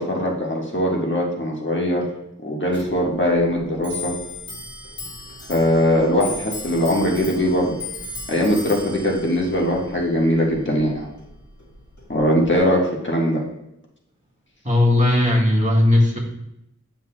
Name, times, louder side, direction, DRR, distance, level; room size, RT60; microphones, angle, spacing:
voice 1, 0.0-2.1 2.4-4.1 5.5-7.8 8.3-11.1 12.1-13.4, equal, 40° left, -2 dB, 1.3 m, -21 dB
Clock, 2.7-12.6, left 3 dB, 70° left, 2.6 m, -37 dB
voice 2, 14.6-16.2, left 1 dB, 25° right, -3 dB, 1.6 m, -17 dB
9.4 x 5.9 x 2.2 m, 0.80 s
wide cardioid pair, 55°, 31 cm